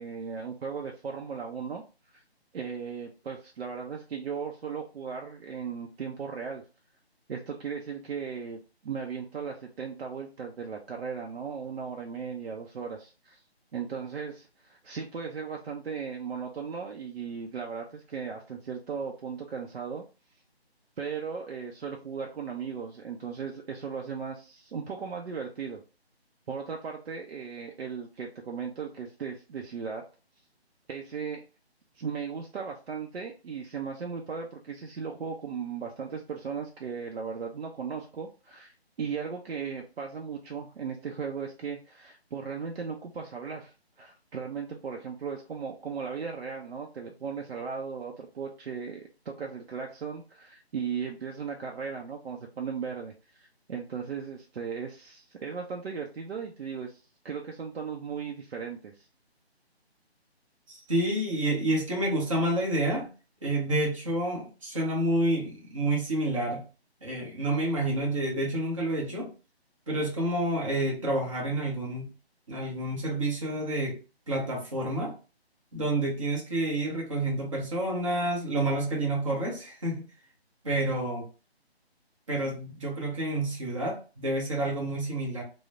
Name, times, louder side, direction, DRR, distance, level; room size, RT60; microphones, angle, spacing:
voice 1, 0.0-1.8 2.5-6.6 7.3-13.4 13.7-20.0 21.0-25.8 26.5-30.0 30.9-31.4 32.0-57.0 57.2-59.0, right 6 dB, 65° right, 1 dB, 0.5 m, -37 dB
voice 2, 60.7-63.1 63.4-66.6 67.0-69.3 69.9-72.1 72.5-74.0 74.3-75.2 75.7-80.0 80.6-81.3 82.3-85.4, right 1 dB, 30° right, -2 dB, 0.8 m, -29 dB
3.1 x 2.0 x 2.4 m, 0.33 s
figure-of-eight pair, 160°, 32 cm